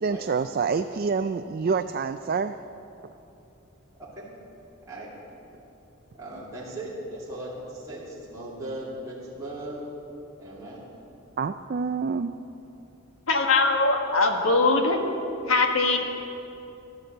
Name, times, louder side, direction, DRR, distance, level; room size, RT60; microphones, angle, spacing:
voice 1, 0.0-2.6 11.4-12.3, right 5 dB, 45° right, 9 dB, 0.3 m, -27 dB
voice 2, 6.1-9.8 10.4-10.8, right 1 dB, 15° right, -8 dB, 2.8 m, -38 dB
voice 3, 13.3-15.0 15.5-16.0, left 3 dB, 75° left, 3 dB, 1.5 m, -21 dB
13.5 x 12.0 x 7.9 m, 2.9 s
head